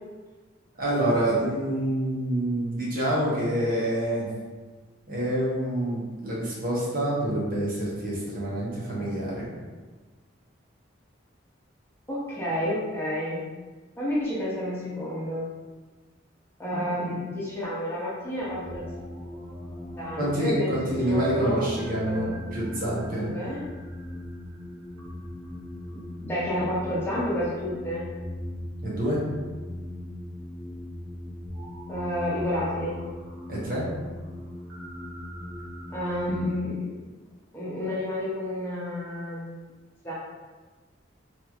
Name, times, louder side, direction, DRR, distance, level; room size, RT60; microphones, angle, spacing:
voice 1, 0.8-4.3 5.1-9.5 20.2-23.3 28.8-29.2 33.5-33.8, right 1 dB, 45° right, -6 dB, 0.9 m, -27 dB
voice 2, 12.1-13.5 14.0-15.5 16.6-18.9 20.0-21.7 22.0-22.3 23.0-23.6 25.9-28.1 31.9-33.0 35.9-37.0 37.5-39.7 40.0-40.1, left 1 dB, 10° left, -8 dB, 0.6 m, -30 dB
sound 1, 18.4-36.5, left 1 dB, 75° right, 0.9 m, -39 dB
3.0 x 2.8 x 2.4 m, 1.3 s
head